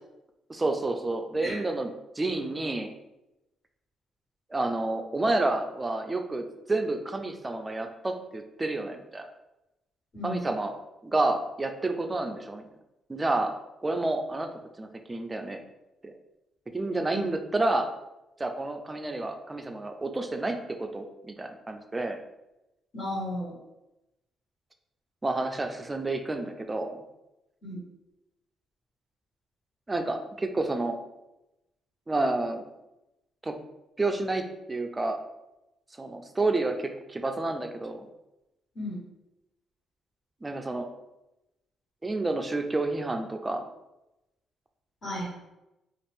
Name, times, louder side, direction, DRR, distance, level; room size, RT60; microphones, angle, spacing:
voice 1, 0.5-2.9 4.5-9.3 10.2-10.7 11.0-12.6 13.1-13.5 13.8-14.5 14.8-15.6 16.0-16.1 16.7-17.9 18.4-22.2 25.2-27.0 29.9-31.0 32.1-32.6 33.4-33.6 34.0-35.2 36.0-38.1 40.4-40.9 42.0-43.6, right 2 dB, 20° right, 5 dB, 0.4 m, -29 dB
voice 2, 22.9-23.5 27.6-27.8 38.7-39.0 45.0-45.3, left 1 dB, 45° left, -8 dB, 1.5 m, -34 dB
2.5 x 2.4 x 3.4 m, 0.94 s
cardioid pair, 90°, 0 cm